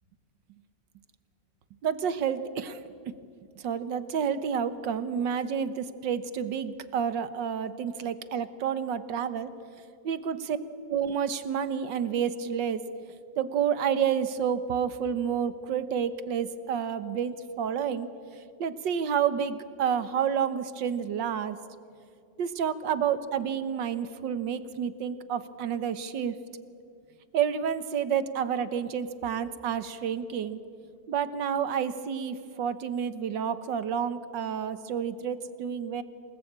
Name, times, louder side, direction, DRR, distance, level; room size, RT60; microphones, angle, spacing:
voice 1, 1.8-2.8 3.6-9.5 10.0-10.6 10.9-12.8 13.4-18.1 18.6-21.6 22.4-26.4 27.3-30.6 31.1-36.0, right 8 dB, 85° right, 12 dB, 1.8 m, -29 dB
27.5 x 19.0 x 8.8 m, 2.4 s
omnidirectional pair, 1.9 m